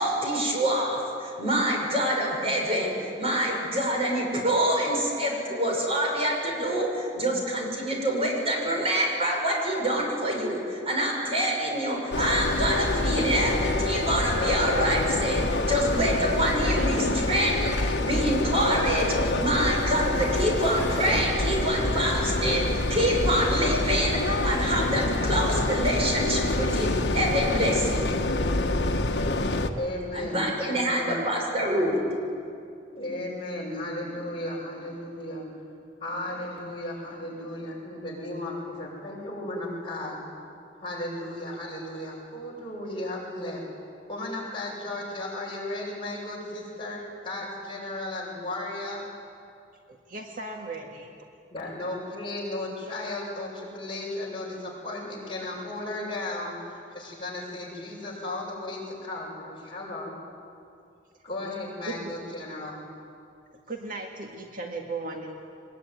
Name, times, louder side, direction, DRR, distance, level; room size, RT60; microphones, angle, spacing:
voice 1, 0.0-28.1 30.1-32.0, right 1 dB, 35° right, -1 dB, 6.1 m, -26 dB
sound 1, 12.1-29.7, left 2 dB, 65° left, 1.5 m, -26 dB
voice 2, 29.7-31.1 32.9-35.5 36.0-40.2 40.8-43.6 44.1-49.0 51.5-60.2 61.2-62.8, left 1 dB, 30° left, -3 dB, 7.2 m, -35 dB
voice 3, 49.9-51.1 61.8-62.2 63.7-65.4, right 3 dB, 50° right, 1 dB, 1.9 m, -36 dB
23.0 x 21.0 x 9.6 m, 2.5 s
head